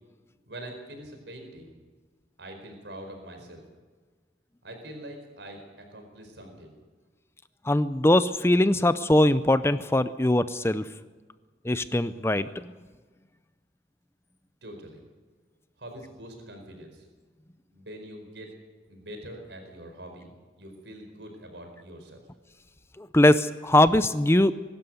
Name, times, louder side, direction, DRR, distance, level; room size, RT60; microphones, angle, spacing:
voice 1, 0.5-1.7 2.4-3.6 4.6-6.7 14.6-15.0 15.8-17.1 17.7-18.5 18.9-22.2, right 1 dB, 75° right, 4 dB, 4.7 m, -44 dB
voice 2, 7.7-10.9 11.6-12.5 23.0-24.5, left 1 dB, 15° left, 13 dB, 0.5 m, -21 dB
22.5 x 12.5 x 9.4 m, 1.4 s
head